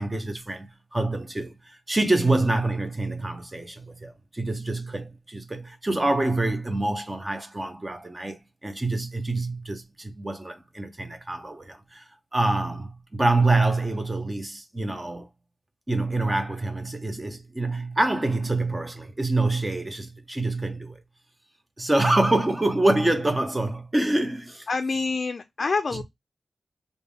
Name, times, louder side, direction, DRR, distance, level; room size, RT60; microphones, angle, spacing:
voice 1, 0.0-12.1 12.3-15.3 15.9-21.0 21.8-24.7, right 2 dB, 20° right, 0.8 m, -26 dB
voice 2, 24.7-26.0, left 4 dB, 50° left, 0.4 m, -26 dB
3.4 x 2.6 x 3.3 m
wide cardioid pair, 115°, 0 cm